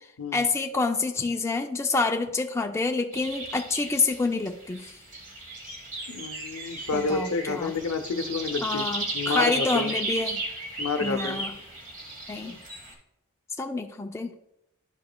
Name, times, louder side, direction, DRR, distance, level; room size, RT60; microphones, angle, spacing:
voice 1, 0.3-5.0 6.9-7.7 8.6-10.4 11.0-11.5 12.3-12.6 13.6-14.3, left 3 dB, 10° left, 4 dB, 0.3 m, -27 dB
sound 1, 3.1-12.9, right 2 dB, 40° right, 1.4 m, -35 dB
voice 2, 6.1-8.8 9.1-9.9 10.8-11.4, left 4 dB, 80° left, 8 dB, 0.6 m, -29 dB
11.0 x 4.9 x 2.2 m, 0.84 s
head